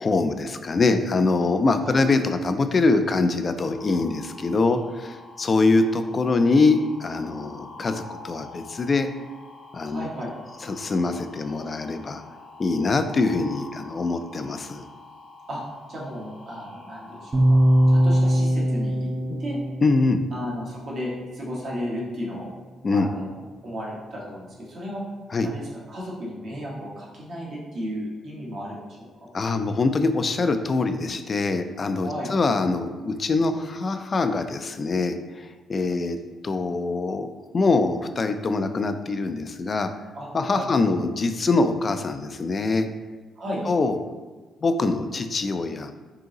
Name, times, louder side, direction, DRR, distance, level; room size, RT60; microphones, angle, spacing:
voice 1, 0.0-9.1 9.7-10.1 10.6-12.2 12.6-14.8 19.3-19.4 19.8-20.2 22.8-23.1 25.3-25.5 29.3-36.2 36.4-37.3 37.5-39.9 40.3-42.9 43.7-44.0 44.6-45.9, left 3 dB, 35° left, 8 dB, 0.3 m, -23 dB
sound 1, 3.7-18.2, left 3 dB, 85° left, 0.7 m, -45 dB
voice 2, 9.9-10.3 15.5-15.6 15.9-17.6 17.9-19.1 19.4-19.6 20.3-22.5 22.9-23.3 23.6-25.0 25.4-29.3 32.0-32.3 40.1-40.9 43.4-43.6, equal, 55° right, -4 dB, 1.3 m, -34 dB
sound 2, 17.3-21.4, equal, 30° right, 0.6 m, -22 dB
3.8 x 2.8 x 3.9 m, 1.3 s
cardioid pair, 90°, 0 cm